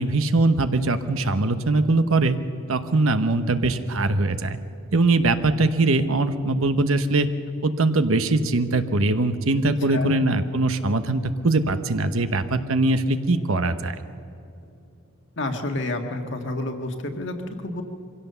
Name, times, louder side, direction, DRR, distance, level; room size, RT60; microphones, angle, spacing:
voice 1, 0.0-2.4 2.7-4.6 4.9-7.3 7.6-13.9, right 2 dB, 70° right, 10 dB, 1.0 m, -21 dB
voice 2, 15.4-17.8, left 2 dB, 55° left, 4 dB, 1.8 m, -29 dB
24.0 x 16.5 x 6.9 m, 2.7 s
head